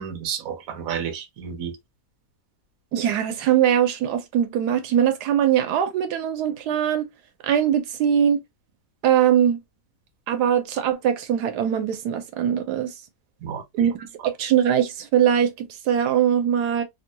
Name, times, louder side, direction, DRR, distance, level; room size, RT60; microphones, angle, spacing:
voice 1, 0.0-1.8 13.4-13.9, right 8 dB, 65° right, 1.1 m, -31 dB
voice 2, 2.9-7.1 7.4-8.4 9.0-9.6 10.3-12.9 13.7-16.8, right 9 dB, 85° right, 1.2 m, -21 dB
3.0 x 2.2 x 2.6 m
omnidirectional pair, 1.7 m